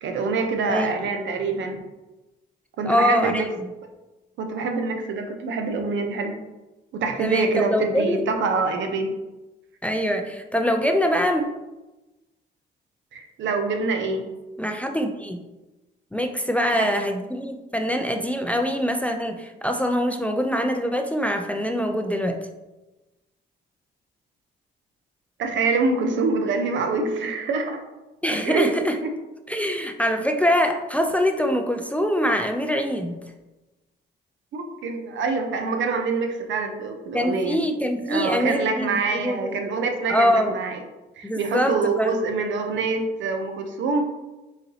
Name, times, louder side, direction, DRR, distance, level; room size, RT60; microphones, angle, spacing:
voice 1, 0.0-1.8 2.8-3.5 4.4-6.4 6.9-9.1 13.1-14.3 16.6-16.9 25.4-27.8 28.4-28.7 29.0-29.1 34.5-37.6 38.1-40.8 41.2-44.0, right 4 dB, 70° right, 5 dB, 0.7 m, -25 dB
voice 2, 0.7-1.1 2.8-3.7 7.2-8.2 9.8-11.4 14.6-15.4 16.1-22.4 28.2-29.0 29.5-33.1 37.1-39.6 40.1-40.5 41.2-42.1, equal, 5° left, 4 dB, 0.4 m, -24 dB
4.0 x 3.9 x 2.7 m, 1.1 s
cardioid pair, 90°, 20 cm